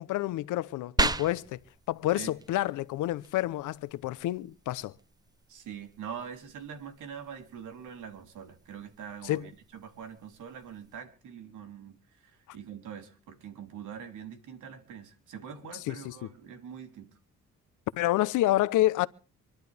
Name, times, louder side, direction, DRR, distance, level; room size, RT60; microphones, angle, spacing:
voice 1, 0.0-1.6 1.9-4.9 9.2-9.5 15.7-16.3 18.0-19.1, left 15 dB, 90° left, 0.9 m, -28 dB
sound 1, 1.0-11.0, right 2 dB, 15° right, 0.8 m, -38 dB
voice 2, 5.5-12.0 12.5-17.1, right 7 dB, 80° right, 3.5 m, -43 dB
26.0 x 11.5 x 3.5 m
cardioid pair, 90°, 30 cm